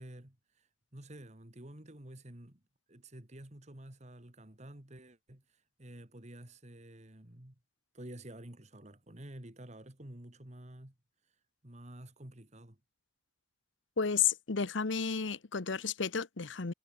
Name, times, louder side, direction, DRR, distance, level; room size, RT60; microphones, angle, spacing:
voice 1, 0.0-2.6 2.9-7.6 7.9-10.9 11.2-12.8, right 1 dB, 35° right, 2.2 m, -50 dB
voice 2, 14.0-16.7, left 6 dB, 70° left, 1.0 m, -32 dB
head